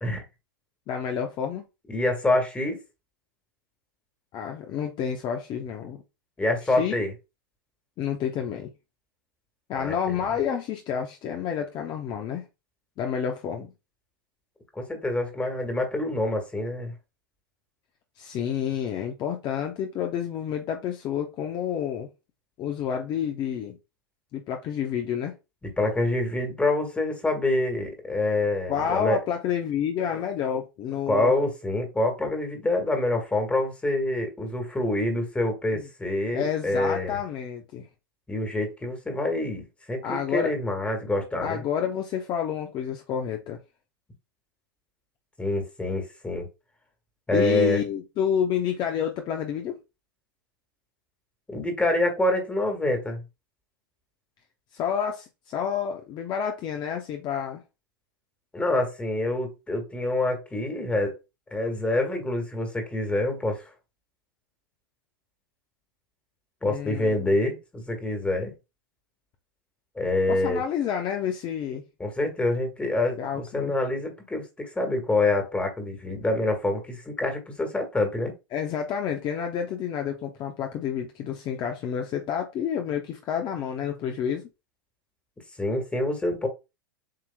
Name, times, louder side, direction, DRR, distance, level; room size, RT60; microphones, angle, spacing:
voice 1, 0.9-1.6 4.3-6.0 6.7-6.9 8.0-8.7 9.7-12.4 13.0-13.7 18.2-22.1 22.6-23.8 24.3-25.3 28.7-31.3 35.7-35.8 36.3-37.9 40.0-40.5 41.4-43.6 47.3-49.8 54.7-57.6 66.6-67.3 70.3-71.8 73.2-73.7 78.5-84.5, left 8 dB, 40° left, 0.8 m, -29 dB
voice 2, 1.9-2.8 6.4-7.1 9.7-10.1 14.7-16.9 25.8-29.2 31.1-37.2 38.3-41.6 45.4-46.5 47.3-47.8 51.5-53.2 58.5-61.1 61.5-63.6 66.6-68.5 69.9-70.6 72.0-78.3 85.6-86.5, left 2 dB, 10° left, 1.7 m, -26 dB
7.6 x 3.0 x 2.3 m
hypercardioid pair, 105°, 12 cm